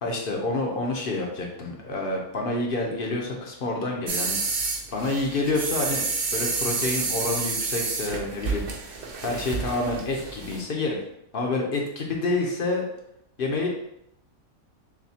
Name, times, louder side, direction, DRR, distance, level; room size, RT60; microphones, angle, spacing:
voice 1, 0.0-4.6 4.9-6.0 6.3-8.6 9.2-11.0 11.3-12.9 13.4-13.7, left 2 dB, 50° left, 0 dB, 0.7 m, -28 dB
sound 1, 4.1-10.6, right 4 dB, 60° right, 0.6 m, -29 dB
6.2 x 2.2 x 2.8 m, 0.76 s
omnidirectional pair, 1.5 m